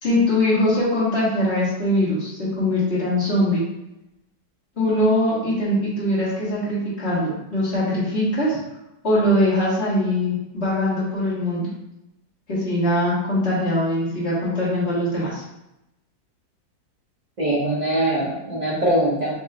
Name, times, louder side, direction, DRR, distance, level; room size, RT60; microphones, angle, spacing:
voice 1, 0.0-3.6 4.8-8.6 9.0-11.7 12.5-15.4, left 1 dB, 35° left, -7 dB, 1.8 m, -22 dB
voice 2, 17.4-19.3, right 1 dB, 65° right, -6 dB, 0.4 m, -22 dB
4.5 x 2.8 x 3.7 m, 0.88 s
omnidirectional pair, 2.0 m